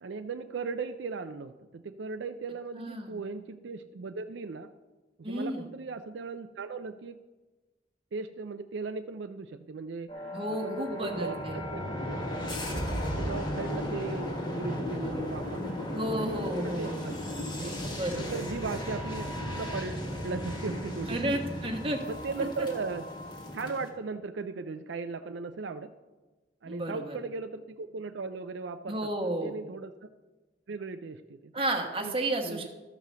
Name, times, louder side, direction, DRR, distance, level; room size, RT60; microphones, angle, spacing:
voice 1, 0.0-4.7 5.2-7.2 8.1-12.2 13.0-16.3 16.6-17.1 17.5-17.7 18.1-21.4 22.1-23.1 23.5-25.9 26.6-29.9 30.7-31.5 32.0-32.2 32.4-32.7, right 4 dB, 70° right, 8 dB, 0.4 m, -38 dB
voice 2, 2.8-3.2 5.2-5.7 10.3-11.6 15.9-17.1 17.9-18.4 21.1-22.0 22.6-22.7 26.7-27.2 28.9-29.5 31.5-32.7, right 1 dB, 30° right, 3 dB, 1.2 m, -32 dB
sound 1, 10.1-23.9, equal, 25° left, 1.5 m, -35 dB
13.0 x 4.9 x 6.7 m, 1.2 s
head